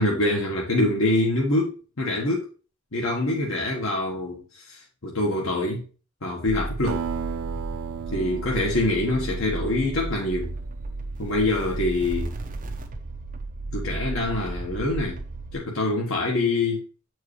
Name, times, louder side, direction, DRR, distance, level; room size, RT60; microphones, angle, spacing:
voice 1, 0.0-2.5 2.9-5.8 6.2-7.0 8.1-10.5 11.2-12.3 13.7-15.2 15.5-16.8, left 2 dB, 70° left, 1.4 m, -25 dB
sound 1, 6.5-15.6, right 2 dB, 40° right, 0.9 m, -34 dB
Acoustic guitar, 6.9-11.7, right 7 dB, 75° right, 0.4 m, -36 dB
7.9 x 4.7 x 3.2 m
head